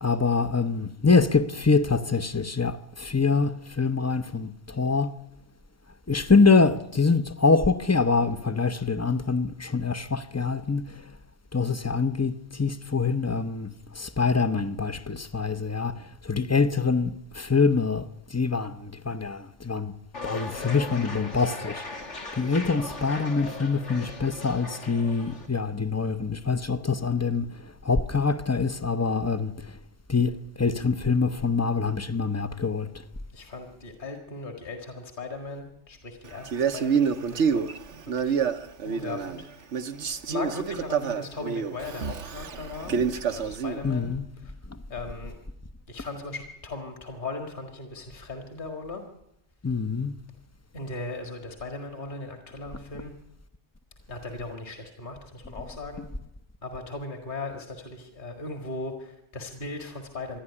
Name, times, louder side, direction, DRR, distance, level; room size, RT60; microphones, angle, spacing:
voice 1, 0.0-5.1 6.1-11.0 11.5-19.9 20.2-21.9 22.3-29.8 30.1-32.9 42.9-43.0 43.8-44.3 44.7-44.8 49.6-50.1, left 4 dB, 15° left, 0.6 m, -25 dB
sound 1, 20.1-25.5, left 3 dB, 90° left, 2.9 m, -38 dB
voice 2, 33.3-37.6 38.2-38.4 38.8-39.7 39.9-42.9 43.3-44.1 44.4-44.5 44.9-45.4 45.9-49.0 50.7-53.1 54.1-56.1 56.6-60.4, left 3 dB, 45° left, 2.1 m, -38 dB
Male speech man speaking, 36.4-39.4 39.7-43.8, right 6 dB, 80° right, 1.3 m, -27 dB
26.5 x 11.0 x 9.9 m
omnidirectional pair, 1.2 m